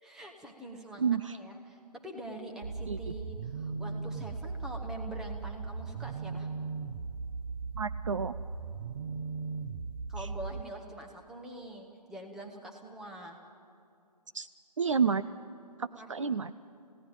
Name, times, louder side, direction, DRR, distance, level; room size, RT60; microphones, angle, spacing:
voice 1, 0.0-6.5 10.1-13.4 15.9-16.4, right 1 dB, 5° right, 1 dB, 1.2 m, -45 dB
voice 2, 1.0-1.4 2.9-3.1 7.8-8.3 14.3-14.5 14.8-15.2 15.8-16.5, right 6 dB, 50° right, 12 dB, 0.6 m, -30 dB
sound 1, 2.6-10.6, right 4 dB, 35° right, 1.0 m, -38 dB
29.5 x 17.0 x 9.0 m, 2.5 s
figure-of-eight pair, 145°, 21 cm